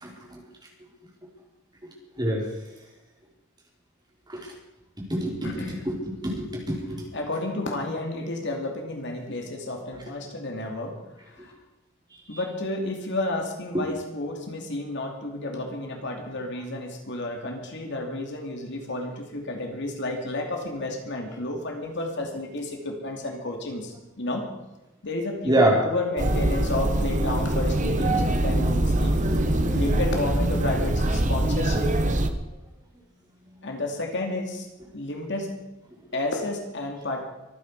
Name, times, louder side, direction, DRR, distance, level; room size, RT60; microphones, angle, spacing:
voice 1, 0.0-0.4 2.2-2.4 4.3-4.4 5.1-5.9 6.2-6.8 25.5-25.8 29.7-29.8, right 1 dB, 20° right, -1 dB, 4.1 m, -24 dB
voice 2, 5.4-5.8 7.1-11.0 11.4-11.5 12.3-24.5 25.0-29.2 29.7-31.9 33.6-34.7 34.9-35.5 36.1-37.2, left 2 dB, 60° left, 2 dB, 2.7 m, -31 dB
sound 1, 26.2-32.3, right 1 dB, 35° right, 1.2 m, -23 dB
24.0 x 10.0 x 4.9 m, 1.0 s
head